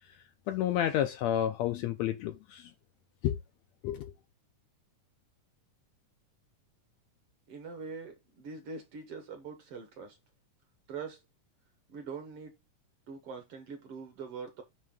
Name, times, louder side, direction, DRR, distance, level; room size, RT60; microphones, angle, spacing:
voice 1, 0.5-2.7 3.2-3.4 3.8-4.1, left 11 dB, 80° left, 1.6 m, -30 dB
voice 2, 7.5-10.2 10.9-11.2 11.9-12.5 13.1-14.6, right 5 dB, 60° right, 1.7 m, -43 dB
8.7 x 3.3 x 3.7 m
omnidirectional pair, 3.5 m